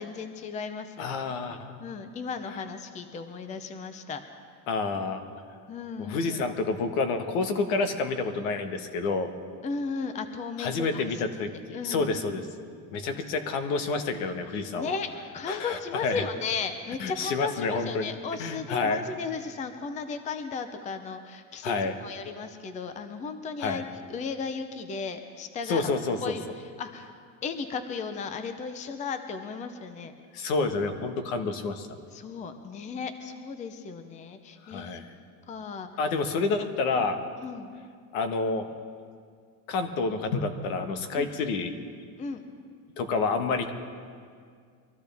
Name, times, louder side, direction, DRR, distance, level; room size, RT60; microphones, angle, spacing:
voice 1, 0.0-1.1 1.5-4.2 5.7-6.4 9.6-11.2 11.7-12.1 14.7-21.7 22.0-25.9 26.2-27.1 27.4-30.1 32.1-35.0 35.5-35.9 36.9-37.1 37.4-37.7 41.1-41.3 42.2-42.4, left 5 dB, 15° left, 8 dB, 0.6 m, -35 dB
voice 2, 1.0-1.8 4.7-5.2 6.0-9.3 10.6-12.4 12.9-15.0 15.5-16.2 17.0-18.1 18.4-19.0 21.6-21.9 23.6-23.8 25.7-26.4 30.3-31.9 34.6-35.1 36.0-37.2 38.1-38.7 39.7-41.8 43.0-43.7, left 4 dB, 70° left, 7 dB, 1.5 m, -29 dB
24.0 x 14.5 x 3.5 m, 2.1 s
supercardioid pair, 145°, 43 cm